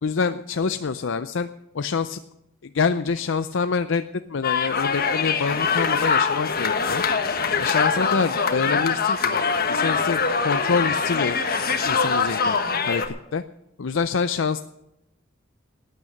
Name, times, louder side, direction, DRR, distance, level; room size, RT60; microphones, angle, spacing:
voice 1, 0.0-1.5 1.7-2.2 2.6-11.4 11.8-12.6 12.9-13.4 13.8-14.6, left 5 dB, 65° left, 10 dB, 0.5 m, -26 dB
sound 1, 4.4-13.1, left 5 dB, 50° left, 1.4 m, -23 dB
18.0 x 9.2 x 6.6 m, 0.86 s
head